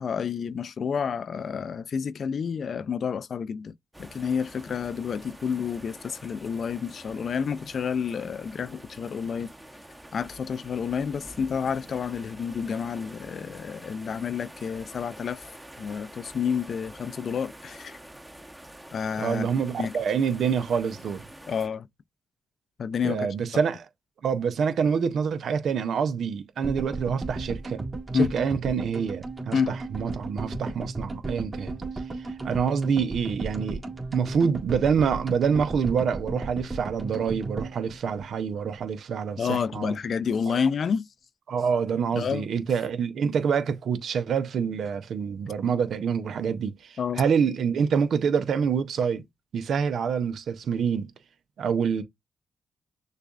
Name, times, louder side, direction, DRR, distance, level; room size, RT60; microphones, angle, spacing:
voice 1, 0.0-3.7 4.0-9.5 10.1-15.4 15.8-18.0 18.9-19.5 19.8-19.9 21.5-21.9 22.8-23.3 28.1-28.3 29.5-29.7 39.4-41.1 42.1-42.5 47.0-47.2, left 6 dB, 65° left, 0.4 m, -29 dB
sound 1, 3.9-21.7, right 1 dB, 10° right, 0.9 m, -46 dB
voice 2, 19.2-21.3 23.0-23.8 24.2-27.9 28.1-31.7 32.2-33.8 34.1-39.9 40.5-40.6 41.5-49.2 49.5-51.1 51.6-52.0, right 6 dB, 80° right, 0.6 m, -26 dB
sound 2, 26.6-38.9 39.1-39.2 39.4-39.5, right 3 dB, 35° right, 1.8 m, -35 dB
6.6 x 2.4 x 2.4 m
cardioid pair, 55°, 0 cm